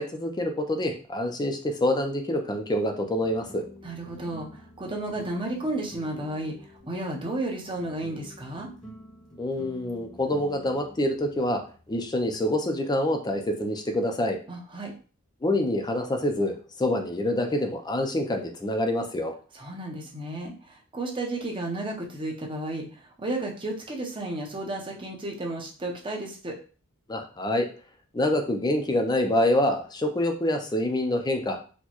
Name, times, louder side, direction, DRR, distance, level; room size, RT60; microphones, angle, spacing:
voice 1, 0.0-3.6 9.4-11.6 11.9-14.4 15.4-19.3 27.1-27.7 28.1-31.6, left 1 dB, 20° left, 4 dB, 0.4 m, -26 dB
sound 1, 3.2-12.5, left 1 dB, 5° left, 0.9 m, -49 dB
voice 2, 3.8-6.6 6.8-8.7 14.5-14.9 19.5-26.6, right 2 dB, 25° right, 0 dB, 0.7 m, -33 dB
4.3 x 2.2 x 2.9 m, 0.37 s
head